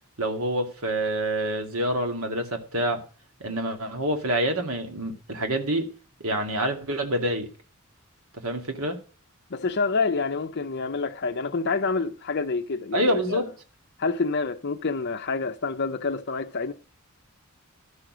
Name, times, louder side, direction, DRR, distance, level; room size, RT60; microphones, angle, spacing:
voice 1, 0.2-3.0 3.4-5.9 6.2-7.5 8.3-9.0 12.9-13.5, right 1 dB, 80° right, 2.2 m, -27 dB
voice 2, 9.5-13.4 14.0-16.7, left 4 dB, 50° left, 0.7 m, -27 dB
12.5 x 6.3 x 6.2 m
head